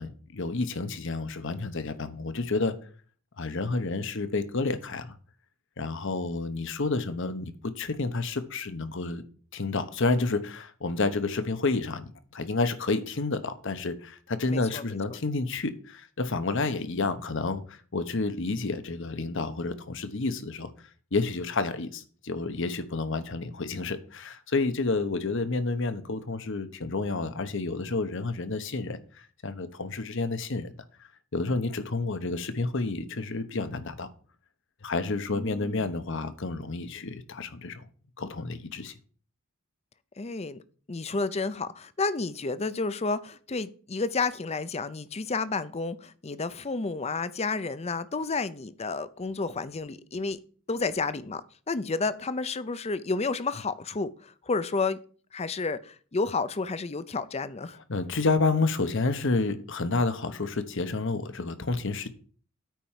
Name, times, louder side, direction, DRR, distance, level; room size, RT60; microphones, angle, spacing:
voice 1, 0.0-2.8 3.4-5.1 5.8-9.2 9.5-20.7 21.1-30.7 31.3-34.1 34.8-37.8 38.2-38.9 57.9-62.1, left 3 dB, 60° left, 1.0 m, -30 dB
voice 2, 14.5-14.8 35.3-35.9 40.2-40.6 40.9-50.4 50.7-51.4 51.7-55.0 55.3-57.8, left 3 dB, 30° left, 0.6 m, -31 dB
9.3 x 4.5 x 7.3 m
head